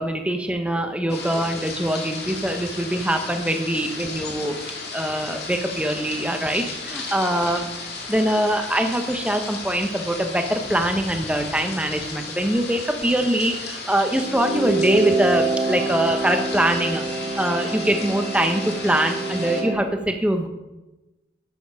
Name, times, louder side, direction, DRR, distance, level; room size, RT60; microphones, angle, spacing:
voice 1, 0.0-4.6 4.9-7.7 8.1-17.0 17.4-20.5, right 1 dB, 5° right, 5 dB, 1.0 m, -23 dB
sound 1, 1.1-19.6, left 3 dB, 65° left, 2.2 m, -35 dB
sound 2, 14.2-19.9, right 3 dB, 40° right, 1.6 m, -26 dB
12.0 x 7.7 x 5.1 m, 1.0 s
head